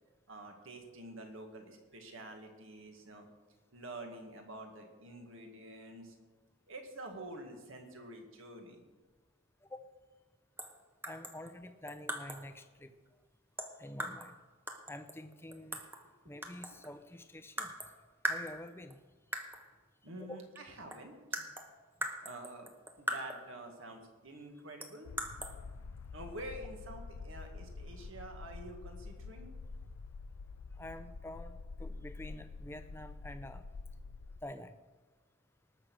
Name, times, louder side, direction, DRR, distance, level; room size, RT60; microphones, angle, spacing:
voice 1, 0.3-3.3 3.7-6.2 6.7-8.8 20.0-21.4 22.2-22.7 23.0-25.1 26.1-29.5, right 1 dB, 65° right, 3 dB, 2.1 m, -48 dB
sound 1, 10.6-10.8 11.0-12.5 13.6-14.4 14.7-16.1 16.4-17.0 17.6-17.9 18.2-18.9 19.3-19.7 20.6-20.7 20.9-23.6 24.8-25.5, right 1 dB, 10° right, 1.0 m, -40 dB
voice 2, 11.0-12.9 13.8-14.4 14.9-15.8 16.3-17.7 18.3-19.0 20.2-20.4 30.8-33.6 34.4-34.7, left 1 dB, 10° left, 9 dB, 0.7 m, -47 dB
sound 2, 25.0-34.4, left 4 dB, 85° left, 0.5 m, -47 dB
19.5 x 6.6 x 6.1 m, 1.3 s
head